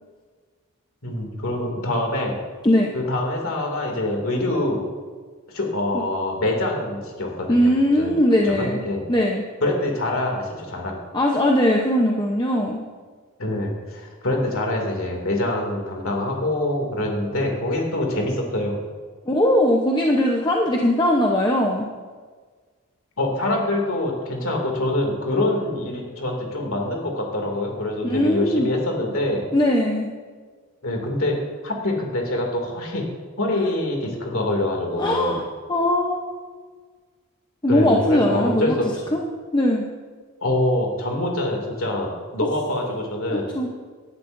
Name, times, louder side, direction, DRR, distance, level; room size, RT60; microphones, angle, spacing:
voice 1, 1.0-2.4 2.9-4.8 5.5-7.7 8.0-8.1 8.4-9.0 9.6-11.0 13.4-18.8 23.2-29.4 30.8-31.4 31.6-33.0 33.4-35.4 37.7-38.9 40.4-43.5, left 1 dB, 65° left, 0 dB, 2.5 m, -25 dB
voice 2, 7.5-8.8 9.1-9.4 11.1-12.8 19.3-21.9 28.0-28.7 29.5-30.1 33.6-33.7 35.0-35.4 35.7-36.3 37.6-38.8 39.1-39.2 39.5-39.8 43.3-43.7, left 1 dB, 20° left, 0 dB, 0.8 m, -20 dB
18.5 x 11.5 x 2.6 m, 1.5 s
head